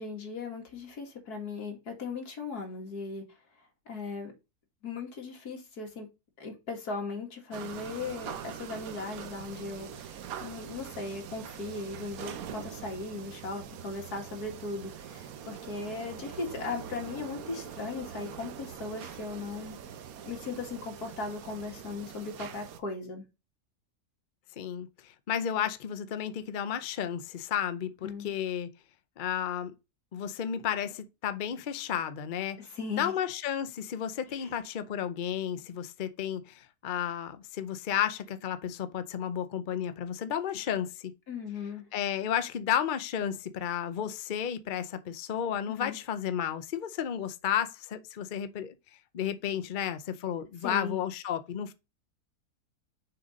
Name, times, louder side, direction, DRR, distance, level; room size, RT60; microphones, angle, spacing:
voice 1, 0.0-3.3 3.9-4.3 4.8-6.1 6.4-19.8 20.3-23.3 28.0-28.3 32.6-33.2 34.3-34.5 41.3-41.9 45.7-46.0 50.6-51.0, left 4 dB, 70° left, 2.5 m, -38 dB
sound 1, 7.5-22.8, right 8 dB, 70° right, 1.2 m, -43 dB
voice 2, 24.6-28.7 29.2-29.7 30.1-32.6 32.9-41.1 41.9-48.7 49.1-51.7, left 9 dB, 55° left, 0.5 m, -32 dB
6.7 x 4.1 x 5.0 m
omnidirectional pair, 1.7 m